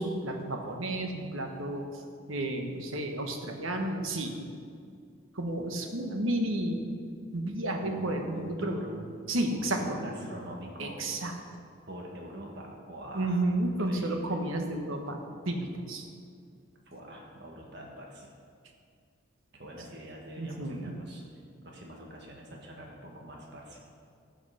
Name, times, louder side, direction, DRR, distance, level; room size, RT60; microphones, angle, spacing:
voice 1, 0.0-2.0 2.3-4.3 5.3-8.8 9.3-10.0 10.8-11.3 13.1-15.2 15.4-16.1 20.4-20.9, right 1 dB, 80° right, 3 dB, 1.3 m, -32 dB
voice 2, 7.8-8.9 9.5-11.0 11.9-14.4 16.9-18.3 19.5-23.8, equal, 55° right, -1 dB, 1.6 m, -44 dB
15.0 x 5.9 x 5.7 m, 2.2 s
head